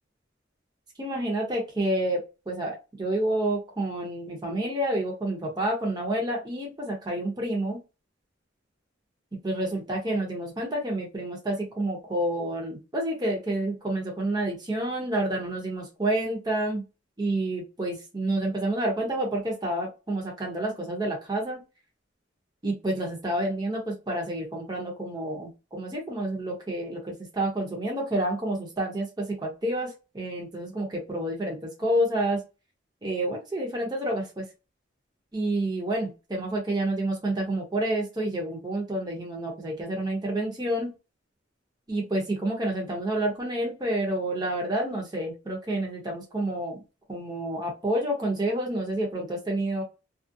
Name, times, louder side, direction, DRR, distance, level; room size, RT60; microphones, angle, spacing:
voice 1, 1.0-7.8 9.4-16.8 17.2-21.6 22.6-32.4 33.0-34.4 35.3-40.9 41.9-46.8 47.1-49.8, right 1 dB, 20° right, -1 dB, 0.8 m, -29 dB
2.4 x 2.0 x 2.6 m, 0.29 s
head